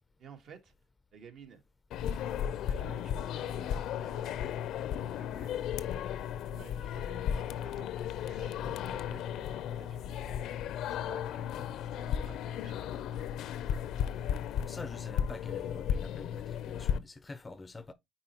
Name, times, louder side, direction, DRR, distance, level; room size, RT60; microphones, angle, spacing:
voice 1, 0.2-0.7 1.1-1.6 2.0-6.0 6.4-10.5 10.8-13.2, right 7 dB, 60° right, 1.6 m, -55 dB
sound 1, 1.9-17.0, left 9 dB, 75° left, 0.5 m, -35 dB
voice 2, 14.6-17.9, left 3 dB, 20° left, 0.5 m, -45 dB
9.8 x 4.2 x 2.9 m
cardioid pair, 125°, 0 cm